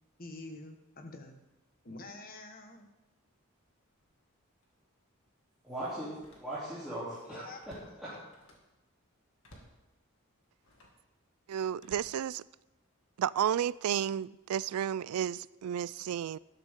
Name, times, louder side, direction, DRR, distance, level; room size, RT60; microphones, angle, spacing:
voice 1, 0.2-1.3 1.8-2.9 7.2-7.6, left 2 dB, 40° left, 1.4 m, -46 dB
Slam, 3.9-4.2 4.6-4.7 6.1-6.9 7.2-8.8 9.4-9.9 10.6-11.1 11.8-12.9 13.4-13.8, equal, 65° left, 2.2 m, -59 dB
voice 2, 5.6-6.1 6.4-8.2, right 1 dB, ahead, 3.1 m, -39 dB
voice 3, 11.5-12.4 13.2-16.4, right 9 dB, 80° right, 0.3 m, -32 dB
13.5 x 12.0 x 3.7 m
head